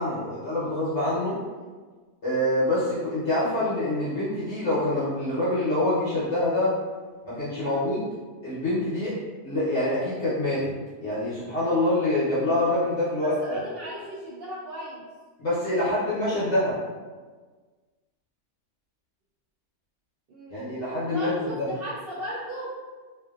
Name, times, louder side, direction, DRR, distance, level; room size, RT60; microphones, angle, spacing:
voice 1, 0.0-1.3 2.2-6.8 7.2-8.1 8.4-9.2 9.4-10.7 11.0-13.6 15.4-16.8 20.5-21.7, left 1 dB, 55° left, -11 dB, 1.0 m, -26 dB
voice 2, 13.2-15.1 20.3-20.7 21.0-22.7, equal, 75° right, -8 dB, 0.5 m, -36 dB
2.6 x 2.6 x 2.3 m, 1.4 s
omnidirectional pair, 1.6 m